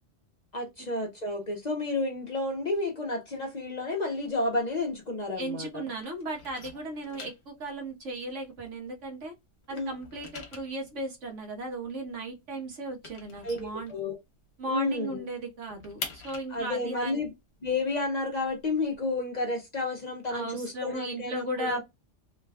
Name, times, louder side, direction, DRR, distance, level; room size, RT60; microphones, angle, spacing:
voice 1, 0.5-5.8 9.7-9.9 13.4-14.2 14.7-15.2 16.5-17.3 17.6-21.8, left 2 dB, 40° left, 0.8 m, -31 dB
sound 1, 4.3-5.7 6.0-9.2 9.5-14.5 14.8-14.9 15.2-19.0, left 4 dB, 60° left, 1.1 m, -45 dB
voice 2, 5.4-9.3 9.7-13.9 14.6-17.2 20.3-21.8, right 2 dB, 75° right, 1.3 m, -36 dB
3.2 x 2.2 x 3.4 m
omnidirectional pair, 1.3 m